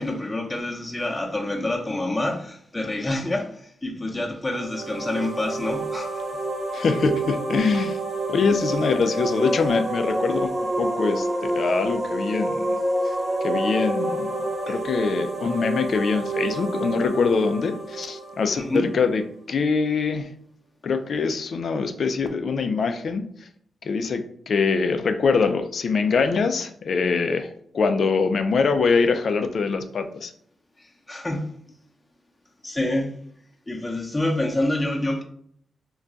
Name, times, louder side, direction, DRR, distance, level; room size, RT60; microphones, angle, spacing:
voice 1, 0.0-6.2 14.7-14.8 18.6-18.9 31.1-31.5 32.6-33.2 33.7-35.2, left 1 dB, 20° left, 0.7 m, -27 dB
sound 1, 4.5-19.2, right 1 dB, 35° right, 0.6 m, -28 dB
voice 2, 6.7-8.0 8.3-10.5 10.8-12.8 13.4-14.3 14.7-19.2 19.5-20.3 20.8-23.3 23.8-30.3, left 4 dB, 65° left, 0.4 m, -23 dB
2.3 x 2.2 x 3.8 m
supercardioid pair, 50°, 0 cm